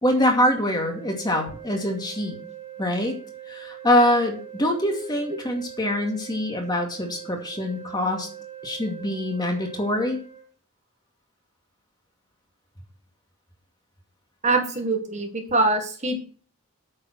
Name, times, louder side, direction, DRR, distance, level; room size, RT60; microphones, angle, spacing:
voice 1, 0.0-2.4 2.8-3.2 3.5-8.3 8.6-10.2, left 1 dB, 20° left, 2 dB, 2.3 m, -24 dB
sound 1, 0.8-10.4, right 11 dB, 90° right, 2.6 m, -42 dB
voice 2, 14.4-16.2, right 2 dB, 30° right, 4 dB, 1.6 m, -23 dB
8.8 x 7.4 x 5.9 m, 0.42 s
head